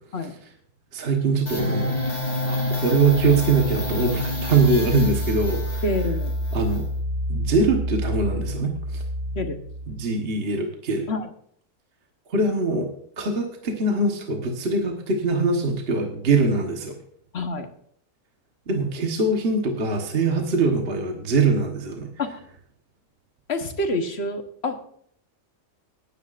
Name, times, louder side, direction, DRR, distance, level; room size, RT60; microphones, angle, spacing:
voice 1, 0.9-2.0 2.4-5.8 6.5-6.9 7.3-9.0 9.9-11.1 12.3-12.9 13.2-17.0 18.7-22.1, right 3 dB, 40° right, 2 dB, 1.5 m, -23 dB
sound 1, 1.5-9.9, left 1 dB, 25° left, 3.5 m, -27 dB
voice 2, 5.8-6.3 9.3-9.6 11.1-11.3 17.3-17.7 22.2-22.4 23.5-24.8, left 2 dB, 45° left, 6 dB, 1.4 m, -27 dB
18.0 x 9.7 x 2.5 m, 0.64 s
omnidirectional pair, 1.6 m